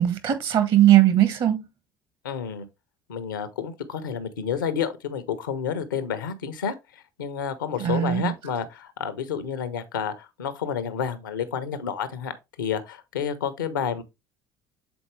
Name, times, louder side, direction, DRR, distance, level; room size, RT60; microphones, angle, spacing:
voice 1, 0.0-1.6 7.8-8.3, right 12 dB, 50° right, 1.5 m, -19 dB
voice 2, 2.2-2.7 3.1-6.8 7.2-12.3 12.6-14.0, left 7 dB, 75° left, 0.8 m, -30 dB
7.0 x 4.2 x 3.3 m
figure-of-eight pair, 55°, 11 cm